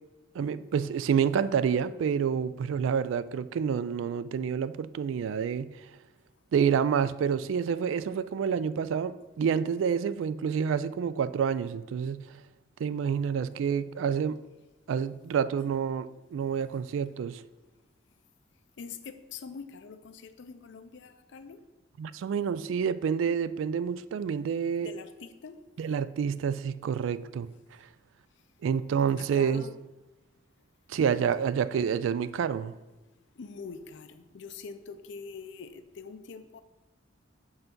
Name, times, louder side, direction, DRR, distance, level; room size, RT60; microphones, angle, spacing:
voice 1, 0.3-5.9 6.5-12.3 12.8-14.4 14.9-17.4 22.0-24.9 25.8-27.5 28.6-29.6 30.9-32.8, right 7 dB, 80° right, 0.3 m, -28 dB
voice 2, 18.8-21.6 24.8-25.6 27.5-27.6 29.2-29.7 33.4-36.6, left 5 dB, 65° left, 0.5 m, -44 dB
5.6 x 3.9 x 5.9 m
head